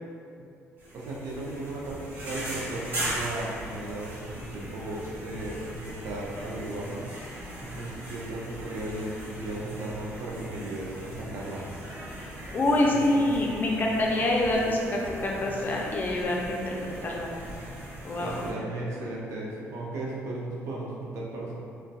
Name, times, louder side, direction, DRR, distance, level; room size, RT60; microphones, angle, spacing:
sound 1, 0.8-18.5, right 1 dB, 45° right, 1.3 m, -39 dB
voice 1, 0.9-7.1 7.6-11.7 12.6-13.3 18.2-21.6, right 2 dB, 70° right, -4 dB, 0.5 m, -36 dB
voice 2, 12.5-17.3 18.0-18.4, left 1 dB, 35° left, -2 dB, 0.4 m, -26 dB
2.6 x 2.1 x 2.2 m, 2.5 s
cardioid pair, 85°, 5 cm